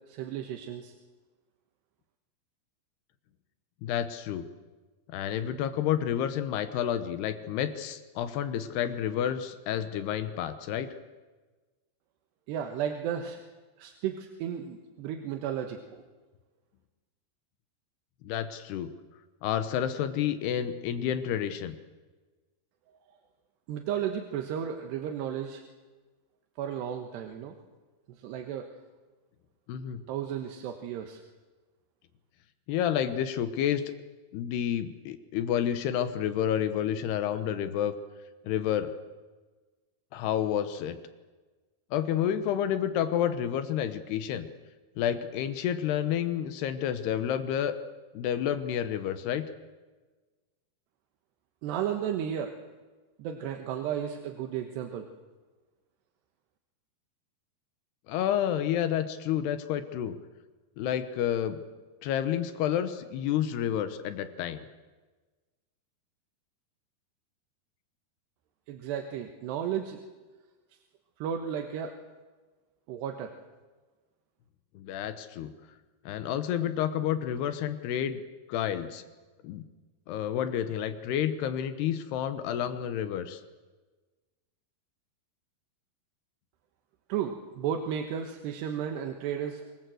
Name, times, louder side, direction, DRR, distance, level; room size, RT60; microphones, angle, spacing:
voice 1, 0.1-0.9 12.5-13.4 13.8-16.0 23.7-25.6 26.6-27.6 28.2-28.7 30.1-31.2 51.6-52.5 53.2-55.1 68.7-70.0 71.2-71.9 72.9-73.3 87.1-89.7, right 9 dB, 80° right, 4 dB, 3.5 m, -33 dB
voice 2, 3.8-4.5 5.1-10.9 18.2-18.9 19.4-21.8 29.7-30.0 32.7-33.8 34.3-37.9 38.4-38.9 40.1-41.0 41.9-44.5 45.0-47.7 48.1-49.4 58.1-60.2 60.8-61.6 62.0-64.7 74.8-75.5 76.1-78.2 78.5-79.0 79.4-79.6 80.1-83.4, left 10 dB, 80° left, 11 dB, 3.1 m, -30 dB
25.5 x 21.5 x 7.8 m, 1.3 s
omnidirectional pair, 4.8 m